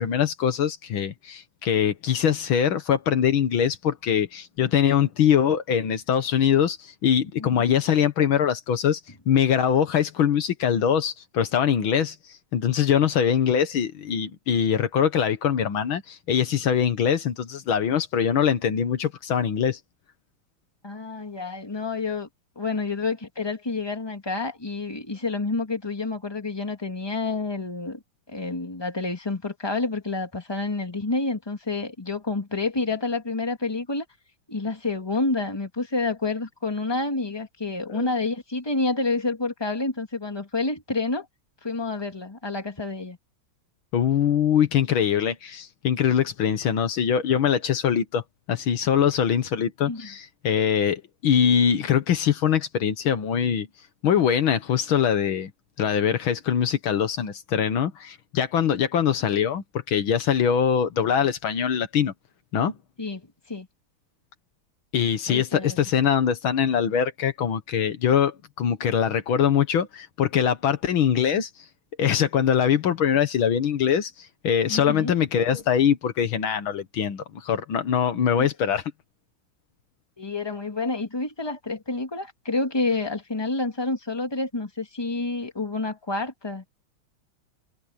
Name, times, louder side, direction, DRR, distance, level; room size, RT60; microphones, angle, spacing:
voice 1, 0.0-9.0 9.3-12.2 12.5-19.8 37.9-38.1 43.9-48.2 48.5-53.7 54.0-55.5 55.8-62.1 62.5-62.8 64.9-71.5 72.0-74.1 74.4-78.8, left 8 dB, 75° left, 2.1 m, -23 dB
voice 2, 7.4-7.7 20.8-22.3 22.6-28.0 28.3-34.0 34.5-41.3 41.6-43.2 49.9-50.1 63.0-63.7 65.3-65.8 74.7-75.1 80.2-86.7, left 3 dB, 10° left, 2.4 m, -29 dB
omnidirectional pair, 2.3 m